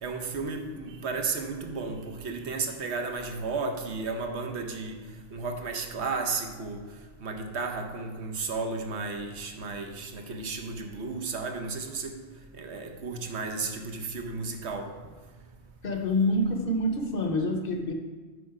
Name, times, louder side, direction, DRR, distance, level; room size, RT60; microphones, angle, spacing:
voice 1, 0.0-5.0 5.3-6.8 7.2-12.2 12.6-14.9, right 4 dB, 75° right, 4 dB, 1.2 m, -33 dB
voice 2, 15.8-17.9, left 1 dB, 55° left, 4 dB, 1.0 m, -26 dB
8.2 x 5.3 x 4.8 m, 1.4 s
omnidirectional pair, 1.1 m